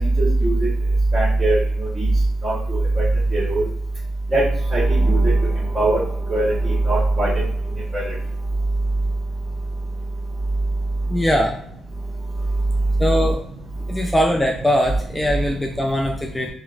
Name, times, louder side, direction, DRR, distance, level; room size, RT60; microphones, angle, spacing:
voice 1, 0.2-0.5 1.1-1.6 2.0-2.1 2.4-2.5 3.3-3.6 4.3-4.4 4.7-5.3 5.7-6.0 6.3-7.3 7.9-8.0, right 2 dB, 30° right, -9 dB, 1.1 m, -18 dB
voice 2, 11.1-11.6 13.0-13.4 13.9-16.5, equal, 10° left, 1 dB, 0.4 m, -21 dB
3.7 x 2.2 x 2.4 m, 0.70 s
cardioid pair, 90°, 0 cm